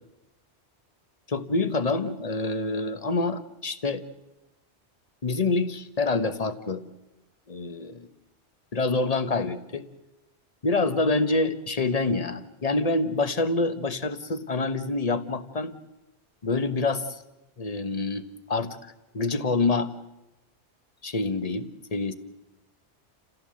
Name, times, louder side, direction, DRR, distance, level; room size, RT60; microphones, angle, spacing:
voice 1, 1.3-4.0 5.2-6.8 7.5-8.1 8.7-9.9 10.6-15.7 16.4-17.2 17.6-19.9 21.0-22.1, left 3 dB, 35° left, 11 dB, 1.2 m, -27 dB
29.5 x 15.5 x 7.7 m, 0.98 s
omnidirectional pair, 1.1 m